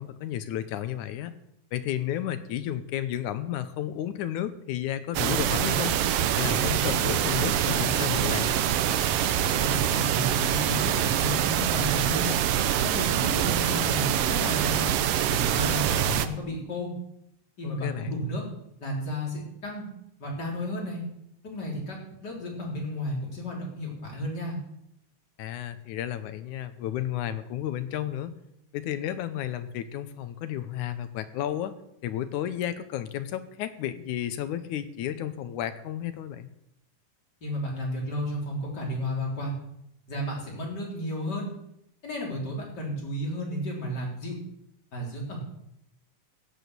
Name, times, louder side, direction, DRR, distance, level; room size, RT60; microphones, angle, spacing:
voice 1, 0.0-1.3 1.7-5.9 6.4-8.5 17.8-18.2 25.4-28.3 28.7-31.7 32.0-36.5, left 11 dB, 75° left, 12 dB, 2.1 m, -32 dB
sound 1, 5.1-16.3, right 10 dB, 90° right, 1.3 m, -25 dB
voice 2, 9.6-12.3 12.8-14.9 15.3-16.9 17.6-18.4 18.8-19.8 20.2-21.0 21.4-24.6 37.4-39.5 40.1-41.5 42.0-44.4 44.9-45.5, equal, 30° left, -2 dB, 4.2 m, -33 dB
16.0 x 8.3 x 6.8 m, 0.77 s
omnidirectional pair, 3.7 m